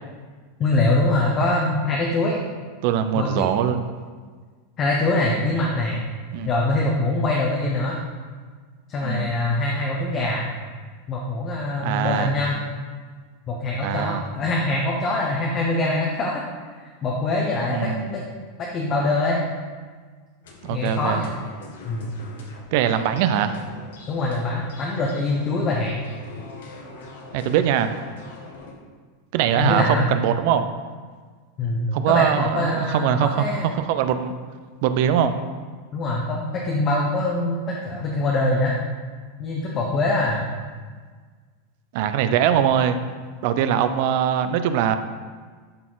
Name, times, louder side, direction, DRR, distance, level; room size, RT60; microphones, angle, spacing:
voice 1, 0.6-2.4 3.1-3.5 4.8-6.0 6.4-8.0 8.9-10.5 11.1-12.6 13.5-16.4 17.0-18.2 18.6-19.4 20.7-21.3 21.8-22.1 24.1-25.9 29.5-30.1 31.6-33.7 35.9-38.8 39.4-40.4, left 2 dB, 20° left, -2 dB, 0.7 m, -23 dB
voice 2, 2.8-3.9 6.3-6.5 9.0-9.3 11.8-12.3 13.8-14.2 17.7-18.1 20.6-21.2 22.7-23.6 27.3-27.9 29.3-30.7 31.9-34.3 34.8-35.4 41.9-43.0 43.4-45.0, right 9 dB, 45° right, 10 dB, 0.4 m, -22 dB
sound 1, 20.4-28.7, left 3 dB, 85° left, 1.4 m, -42 dB
12.0 x 4.1 x 3.9 m, 1.5 s
supercardioid pair, 175°, 0 cm